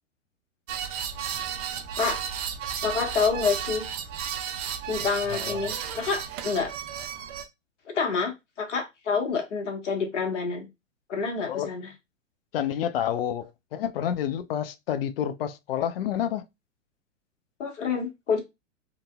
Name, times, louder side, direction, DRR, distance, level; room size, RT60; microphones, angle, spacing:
sound 1, 0.7-7.4, right 8 dB, 30° right, 0.4 m, -33 dB
voice 1, 2.8-3.9 4.8-6.7 7.9-10.7 11.1-11.9 17.6-18.4, left 5 dB, 65° left, 1.3 m, -28 dB
voice 2, 5.3-5.7 11.5-11.7 12.5-13.4 13.7-16.4, left 10 dB, 50° left, 0.4 m, -29 dB
2.8 x 2.6 x 2.2 m
figure-of-eight pair, 110°, 38 cm